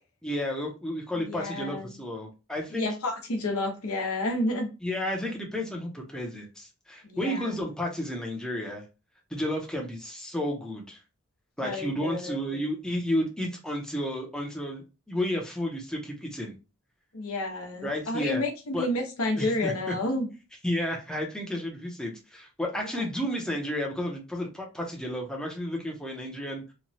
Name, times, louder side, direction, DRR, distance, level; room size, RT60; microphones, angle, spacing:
voice 1, 0.2-2.9 4.8-8.8 9.3-11.0 11.6-16.6 17.8-18.4 18.7-18.9 19.4-19.9 20.6-26.6, equal, 5° left, 0.6 m, -32 dB
voice 2, 1.3-1.9 2.7-4.7 7.0-7.5 11.6-12.9 17.1-20.3 22.8-23.0, left 1 dB, 70° left, 0.8 m, -30 dB
3.0 x 2.2 x 2.6 m
head